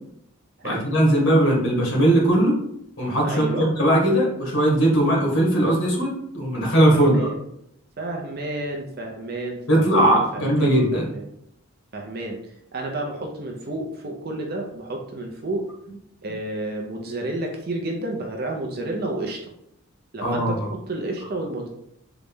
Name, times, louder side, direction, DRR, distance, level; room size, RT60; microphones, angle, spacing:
voice 1, 0.6-2.5 3.0-7.3 9.7-11.1 20.2-20.7, right 1 dB, 80° left, -2 dB, 1.5 m, -19 dB
voice 2, 3.2-3.7 6.9-7.4 8.0-11.2 11.9-12.4 12.7-15.6 16.2-19.4 20.1-21.7, right 1 dB, 45° right, 1 dB, 0.6 m, -31 dB
3.9 x 2.3 x 3.5 m, 0.75 s
head